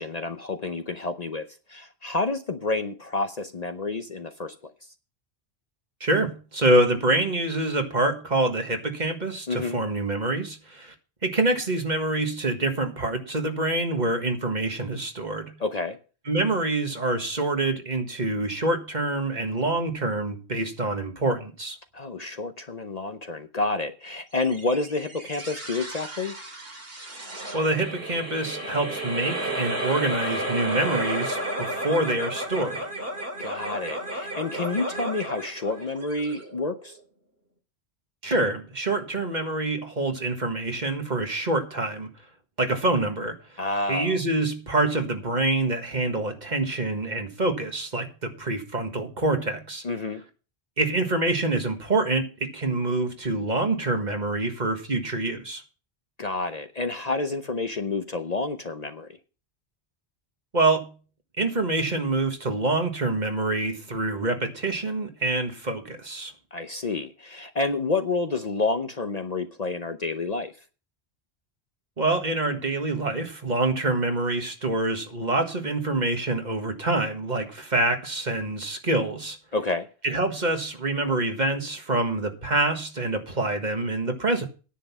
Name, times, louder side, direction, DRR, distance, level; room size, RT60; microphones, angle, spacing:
voice 1, 0.0-4.7 9.5-9.8 15.6-16.0 21.9-26.3 33.4-37.0 43.6-44.2 49.8-50.2 56.2-59.1 66.5-70.5 79.5-79.9, left 3 dB, 45° left, 0.8 m, -29 dB
voice 2, 6.0-10.9 11.2-15.5 16.3-21.8 27.5-32.9 38.2-42.1 42.6-43.6 43.9-49.8 50.8-55.6 60.5-60.9 61.4-66.3 72.0-79.4 80.0-84.5, right 2 dB, 45° right, 1.7 m, -26 dB
sound 1, 24.4-37.0, right 1 dB, 65° right, 2.9 m, -33 dB
10.0 x 7.7 x 6.0 m
omnidirectional pair, 1.1 m